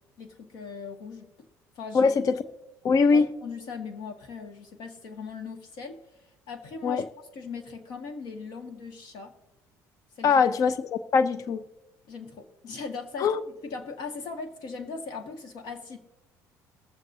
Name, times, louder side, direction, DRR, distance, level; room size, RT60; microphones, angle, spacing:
voice 1, 0.2-1.5 1.7-2.1 3.1-6.0 6.5-9.3 10.2-10.4 12.1-16.0, left 5 dB, 70° left, 5 dB, 1.7 m, -39 dB
voice 2, 2.8-3.3 6.8-7.0 10.2-11.6 13.2-13.4, left 5 dB, 50° left, 13 dB, 0.6 m, -22 dB
22.0 x 7.4 x 2.7 m, 0.98 s
supercardioid pair, 95°, 7 cm